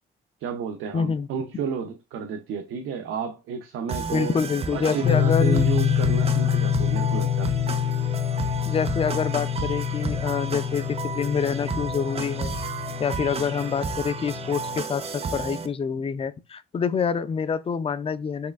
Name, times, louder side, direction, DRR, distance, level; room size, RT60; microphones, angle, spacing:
voice 1, 0.4-4.3 4.7-7.5, right 6 dB, 80° right, 0.6 m, -31 dB
voice 2, 0.9-1.3 4.1-5.7 8.7-12.6 13.0-18.5, left 6 dB, 30° left, 0.4 m, -26 dB
sound 1, 3.9-15.7, right 4 dB, 30° right, 0.5 m, -33 dB
sound 2, 5.0-14.8, left 9 dB, 60° left, 1.8 m, -26 dB
4.3 x 3.1 x 2.4 m
cardioid pair, 90°, 20 cm